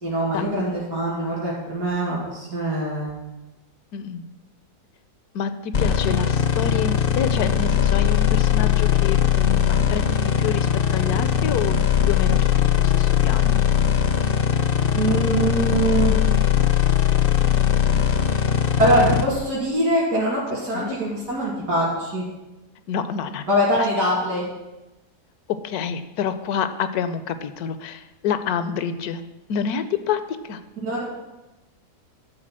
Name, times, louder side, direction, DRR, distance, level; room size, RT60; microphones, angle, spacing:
voice 1, 0.0-3.2 14.9-16.2 18.8-22.2 23.5-24.5 30.8-31.0, right 1 dB, 75° right, -8 dB, 3.1 m, -23 dB
voice 2, 3.9-4.2 5.3-11.8 12.1-13.6 19.0-19.1 20.7-21.0 22.9-23.5 23.8-23.9 25.5-29.2 29.5-30.6, left 7 dB, 75° left, 11 dB, 1.1 m, -28 dB
sound 1, 5.7-19.2, left 9 dB, 60° left, 0.6 m, -20 dB
11.5 x 3.9 x 7.5 m, 1.1 s
omnidirectional pair, 1.8 m